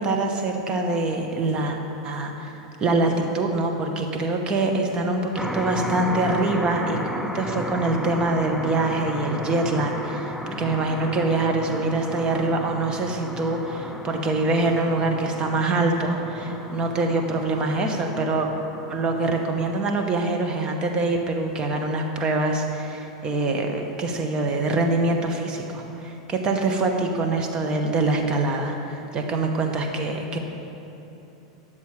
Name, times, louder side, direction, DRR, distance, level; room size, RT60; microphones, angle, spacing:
voice 1, 0.0-1.8 2.0-7.0 7.3-18.5 18.9-30.4, right 2 dB, 30° right, 3 dB, 1.1 m, -24 dB
sound 1, 5.3-20.1, equal, ahead, 0.5 m, -34 dB
10.5 x 7.2 x 4.8 m, 3.0 s
hypercardioid pair, 115°, 3 cm